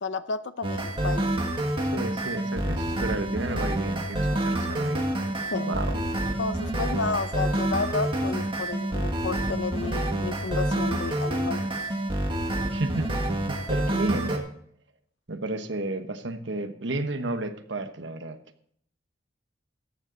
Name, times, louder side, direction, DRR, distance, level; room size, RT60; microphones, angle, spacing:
voice 1, 0.0-1.4 5.5-6.0 6.4-11.7, left 4 dB, 75° left, 0.7 m, -32 dB
sound 1, 0.6-14.4, right 1 dB, 25° right, 1.6 m, -28 dB
voice 2, 1.9-5.1 5.7-5.9 12.7-14.5 15.3-18.4, right 2 dB, 75° right, 1.1 m, -32 dB
14.0 x 9.4 x 4.0 m
head